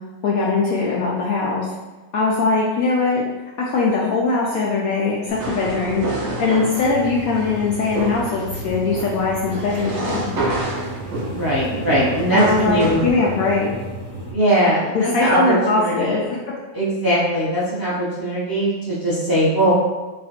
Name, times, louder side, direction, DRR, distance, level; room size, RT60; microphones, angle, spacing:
voice 1, 0.2-1.7 2.1-3.2 3.6-6.1 6.4-10.3 12.3-13.8 14.9-16.4, left 4 dB, 70° left, -4 dB, 0.9 m, -21 dB
sound 1, 5.3-13.1, right 2 dB, 60° right, 0.8 m, -29 dB
sound 2, 6.8-14.3, right 2 dB, 10° left, 1.0 m, -33 dB
voice 2, 11.3-13.1 14.3-16.2 16.7-19.7, right 1 dB, 15° right, -9 dB, 0.8 m, -20 dB
3.2 x 2.3 x 4.2 m, 1.2 s
omnidirectional pair, 1.8 m